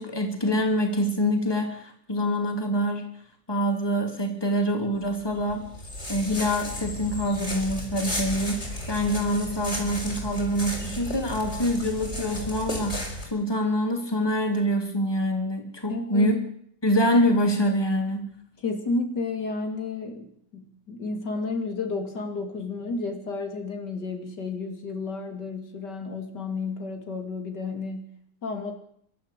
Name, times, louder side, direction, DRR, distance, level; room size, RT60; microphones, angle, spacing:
voice 1, 0.0-3.1 3.5-5.7 6.1-16.4 16.8-18.3, equal, 15° left, 4 dB, 3.0 m, -25 dB
sound 1, 5.0-13.3, left 1 dB, 40° left, 5.7 m, -34 dB
voice 2, 15.9-16.3 18.6-28.7, left 3 dB, 75° left, 5 dB, 3.4 m, -32 dB
26.0 x 12.5 x 8.3 m, 0.67 s
omnidirectional pair, 1.8 m